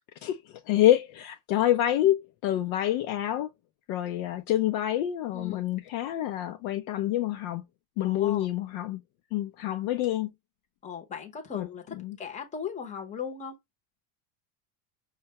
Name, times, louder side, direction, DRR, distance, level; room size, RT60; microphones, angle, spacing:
voice 1, 0.2-3.5 3.9-7.6 8.0-9.0 9.3-10.3 11.5-11.7 12.0-12.2, left 13 dB, 55° left, 0.5 m, -27 dB
voice 2, 5.3-5.6 8.0-8.5 10.8-13.6, left 7 dB, 15° left, 0.8 m, -38 dB
5.6 x 2.2 x 2.8 m
cardioid pair, 160°, 45 cm